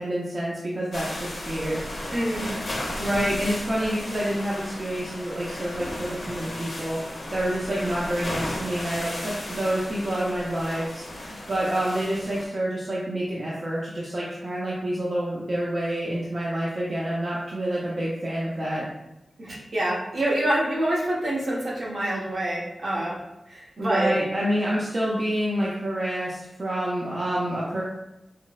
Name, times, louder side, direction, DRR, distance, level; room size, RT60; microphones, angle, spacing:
voice 1, 0.0-1.8 3.0-18.9 23.8-27.8, right 1 dB, 45° right, -6 dB, 0.5 m, -28 dB
sound 1, 0.9-12.4, left 1 dB, 70° left, 0.7 m, -35 dB
voice 2, 2.1-2.5 3.0-3.4 19.4-23.1 23.5-24.1, right 1 dB, 65° right, -5 dB, 0.9 m, -27 dB
4.3 x 2.0 x 2.3 m, 0.90 s
wide cardioid pair, 115°, 0 cm